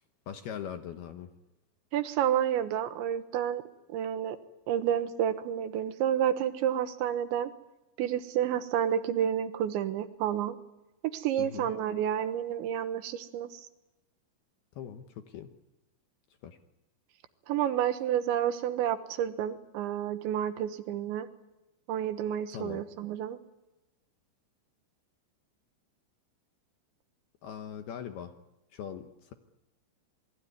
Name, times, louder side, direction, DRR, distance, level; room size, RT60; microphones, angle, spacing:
voice 1, 0.3-1.3 11.4-11.7 14.8-15.5 16.4-16.6 22.5-22.8 27.4-28.3 28.7-29.3, left 9 dB, 70° left, 7 dB, 2.4 m, -41 dB
voice 2, 1.9-3.6 3.9-4.4 4.7-7.5 8.0-10.6 11.1-13.6 17.5-21.3 21.9-23.4, right 10 dB, 70° right, 10 dB, 3.2 m, -30 dB
27.5 x 21.5 x 9.6 m, 0.98 s
omnidirectional pair, 5.9 m